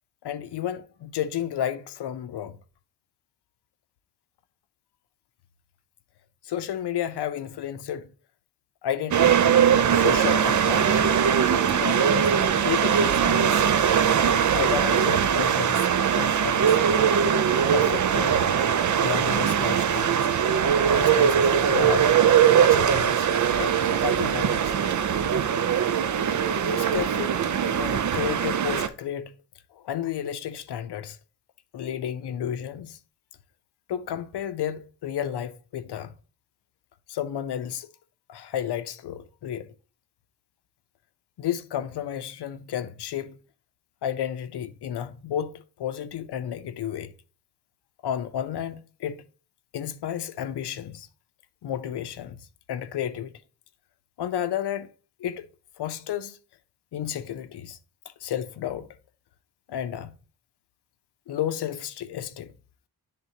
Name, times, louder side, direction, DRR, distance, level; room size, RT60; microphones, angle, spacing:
voice 1, 0.2-2.6 6.4-8.1 8.8-11.2 11.8-12.3 12.6-13.8 14.5-15.9 16.2-16.8 17.7-18.5 18.8-20.3 20.9-22.1 22.6-23.3 23.6-24.7 26.6-27.4 27.8-29.3 29.8-31.2 31.7-33.0 33.9-36.1 37.1-37.9 38.3-39.7 41.4-43.4 44.0-47.1 48.0-49.2 49.7-51.1 51.6-52.4 52.7-53.3 54.2-54.9 55.2-55.5 55.8-56.4 56.9-57.8 58.2-58.9 59.7-60.1 61.3-62.5, left 10 dB, 85° left, 0.6 m, -32 dB
sound 1, 9.1-28.9, right 8 dB, 50° right, 0.5 m, -21 dB
10.5 x 3.6 x 2.7 m
wide cardioid pair, 105°, 39 cm